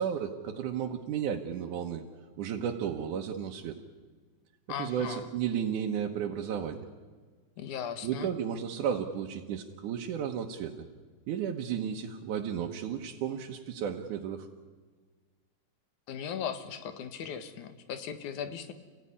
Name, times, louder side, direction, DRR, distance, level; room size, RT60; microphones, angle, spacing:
voice 1, 0.0-2.0 2.4-3.8 4.8-6.8 8.0-10.8 11.3-14.5, right 8 dB, 90° right, 1 dB, 2.6 m, -33 dB
voice 2, 4.7-5.3 7.6-8.3 16.1-18.7, left 8 dB, 80° left, 9 dB, 2.9 m, -37 dB
29.0 x 16.0 x 9.9 m, 1.5 s
omnidirectional pair, 3.5 m